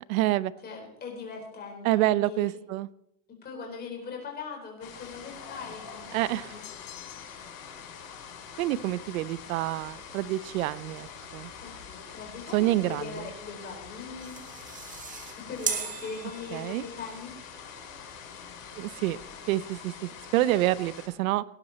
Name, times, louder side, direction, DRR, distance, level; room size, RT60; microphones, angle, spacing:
voice 1, 0.1-0.5 1.8-2.9 6.1-6.6 8.6-11.5 12.5-13.2 16.5-16.8 18.8-19.2 19.5-21.4, right 16 dB, 80° right, 18 dB, 0.8 m, -27 dB
voice 2, 0.6-2.6 3.4-6.6 11.6-14.4 15.4-17.3, left 5 dB, 25° left, 1 dB, 4.5 m, -40 dB
sound 1, 4.8-21.1, left 7 dB, 75° left, 6.5 m, -45 dB
sound 2, 6.6-7.6, left 15 dB, 40° left, 1.1 m, -48 dB
sound 3, 14.0-17.0, right 6 dB, 20° right, 1.5 m, -36 dB
18.0 x 11.0 x 4.3 m, 0.78 s
supercardioid pair, 150°, 41 cm